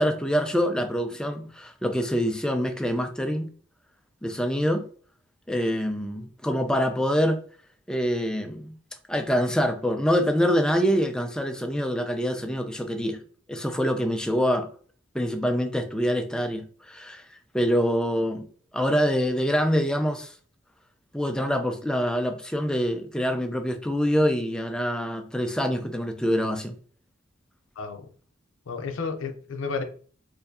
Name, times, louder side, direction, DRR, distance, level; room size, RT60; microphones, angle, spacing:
voice 1, 0.0-3.5 4.2-4.9 5.5-7.4 7.9-8.7 9.1-13.2 13.5-14.7 15.1-17.2 17.5-18.5 18.7-20.3 21.1-26.8, equal, 5° left, 0.4 m, -25 dB
voice 2, 27.8-28.1 28.7-29.8, left 4 dB, 75° left, 0.5 m, -31 dB
4.4 x 2.6 x 2.6 m
head